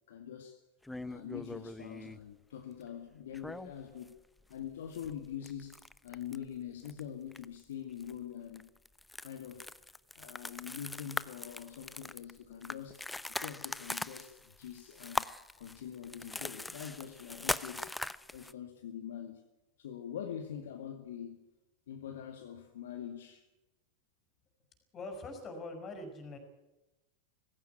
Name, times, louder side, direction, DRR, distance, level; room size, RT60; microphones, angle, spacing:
voice 1, 0.1-0.6 1.0-4.1 4.5-8.8 9.2-9.7 10.2-13.0 13.3-15.3 15.6-19.5 19.8-21.5 21.9-23.5, left 9 dB, 60° left, 2.0 m, -44 dB
sound 1, 0.8-2.2 3.3-4.1 4.4-4.5 4.9-6.5 6.8-7.0 7.3-7.6 8.0-8.1 8.5-18.5, left 2 dB, 5° left, 0.6 m, -41 dB
voice 2, 24.9-26.4, left 2 dB, 25° left, 6.1 m, -43 dB
19.5 x 16.5 x 9.5 m
figure-of-eight pair, 90°, 0 cm